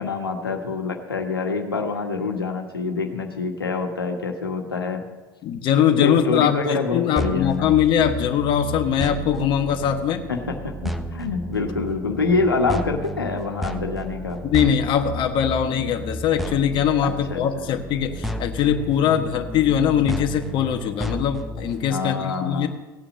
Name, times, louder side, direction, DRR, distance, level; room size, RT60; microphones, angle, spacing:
voice 1, 0.0-5.0 5.9-7.7 10.3-14.4 17.0-17.4 21.9-22.7, left 4 dB, 90° left, 3 dB, 1.6 m, -26 dB
voice 2, 5.4-10.2 14.4-22.7, left 9 dB, 45° left, 5 dB, 1.3 m, -21 dB
sound 1, 7.2-21.9, equal, ahead, 1.1 m, -33 dB
17.0 x 8.9 x 6.3 m, 1.2 s
hypercardioid pair, 80°, 12 cm